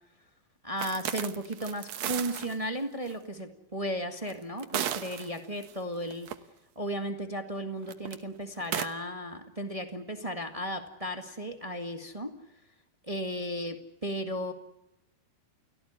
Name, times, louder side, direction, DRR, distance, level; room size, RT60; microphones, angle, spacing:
voice 1, 0.6-6.3 6.7-12.4 13.1-14.5, equal, 25° right, 6 dB, 0.7 m, -35 dB
sound 1, 0.8-2.6 3.1-3.2 4.3-5.7 6.1-6.3 7.8-8.2 8.6-8.9, right 11 dB, 65° right, 1.9 m, -34 dB
30.0 x 16.5 x 9.8 m, 0.87 s
omnidirectional pair, 4.2 m